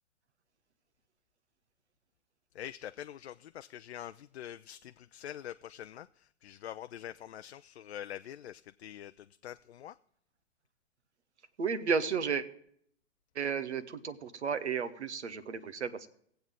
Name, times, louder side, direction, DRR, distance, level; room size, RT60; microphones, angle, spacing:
voice 1, 2.5-10.0, left 11 dB, 65° left, 0.5 m, -45 dB
voice 2, 11.6-12.4 13.3-16.1, right 6 dB, 70° right, 1.0 m, -33 dB
18.5 x 7.9 x 3.7 m
figure-of-eight pair, 110°, 35 cm